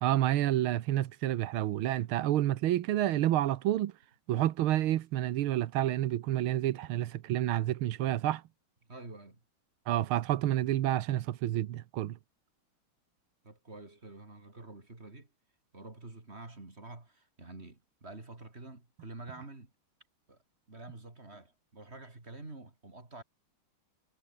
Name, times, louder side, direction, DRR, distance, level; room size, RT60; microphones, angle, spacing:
voice 1, 0.0-3.9 4.3-8.4 9.9-12.2, right 13 dB, 85° right, 1.7 m, -29 dB
voice 2, 8.9-9.4 13.4-15.3 15.7-19.7 20.3-20.4 20.7-23.2, right 2 dB, 30° right, 3.7 m, -48 dB
omnidirectional pair, 2.3 m